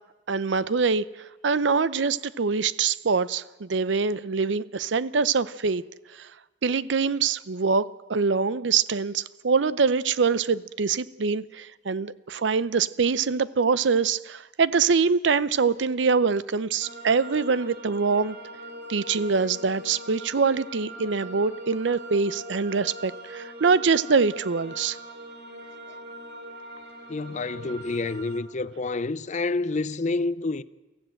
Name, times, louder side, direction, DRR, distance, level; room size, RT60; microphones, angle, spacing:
voice 1, 0.3-1.0 1.4-5.8 6.2-6.3 6.6-18.4 18.9-25.0, right 5 dB, 80° right, 0.6 m, -24 dB
sound 1, 16.8-28.4, right 1 dB, 60° right, 3.5 m, -41 dB
voice 2, 27.1-30.6, left 3 dB, 40° left, 0.6 m, -28 dB
24.0 x 15.0 x 7.7 m
head